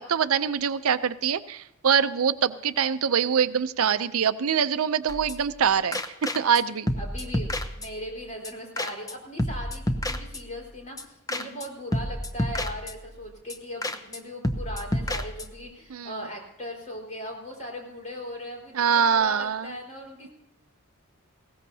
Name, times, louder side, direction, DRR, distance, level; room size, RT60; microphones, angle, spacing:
voice 1, 0.0-6.9 15.9-16.1 18.7-19.7, right 7 dB, 70° right, 13 dB, 0.5 m, -24 dB
sound 1, 5.1-5.6 5.9-6.6 6.9-8.2 8.4-8.5 8.8-9.1 9.4-10.7 11.0-11.1 11.3-11.7 11.9-13.2 13.5-13.6 13.8-14.2 14.4-15.7, left 1 dB, 15° left, 0.8 m, -30 dB
voice 2, 7.0-20.3, equal, 35° left, -1 dB, 4.4 m, -39 dB
19.5 x 17.0 x 2.8 m, 0.87 s
head